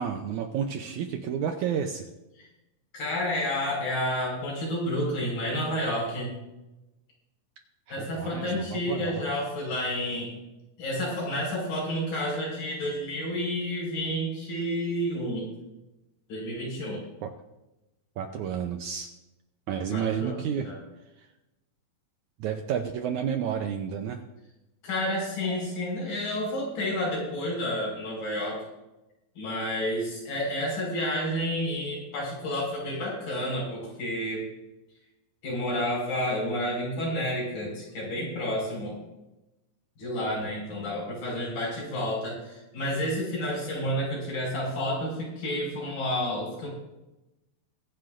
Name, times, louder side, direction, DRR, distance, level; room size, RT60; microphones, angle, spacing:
voice 1, 0.0-2.1 7.9-9.2 17.2-17.3 18.2-19.1 19.7-20.7 21.2-21.3 22.4-24.2, right 8 dB, 75° right, 5 dB, 1.8 m, -31 dB
voice 2, 2.9-6.3 7.9-10.3 10.8-15.5 16.3-17.0 19.9-20.8 24.8-28.6 29.4-34.4 35.4-39.0 40.0-46.7, equal, 75° left, -3 dB, 6.8 m, -30 dB
22.5 x 10.0 x 2.6 m, 0.97 s
omnidirectional pair, 4.1 m